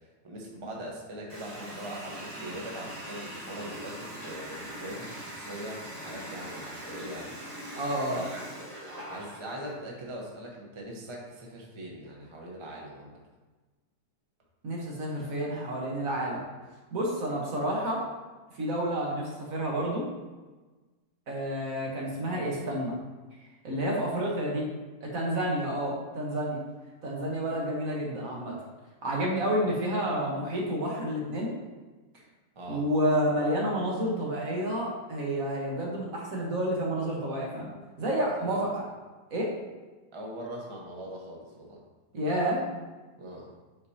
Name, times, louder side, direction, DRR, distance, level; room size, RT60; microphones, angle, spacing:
voice 1, 0.2-7.8 8.1-8.4 9.1-13.1 32.6-32.8 38.4-38.6 40.1-41.8 43.2-43.5, right 1 dB, 25° right, -2 dB, 0.7 m, -41 dB
Water tap faucet, 1.3-9.8, equal, 85° right, 2.4 m, -41 dB
voice 2, 7.8-8.2 14.6-16.4 16.9-18.0 18.5-20.1 21.3-23.0 23.6-24.7 25.0-26.6 27.0-28.6 29.0-31.5 32.7-37.7 38.0-38.8 39.3-39.5 42.1-42.9, right 1 dB, 60° right, -3 dB, 1.5 m, -29 dB
7.8 x 4.3 x 2.8 m, 1.3 s
omnidirectional pair, 1.7 m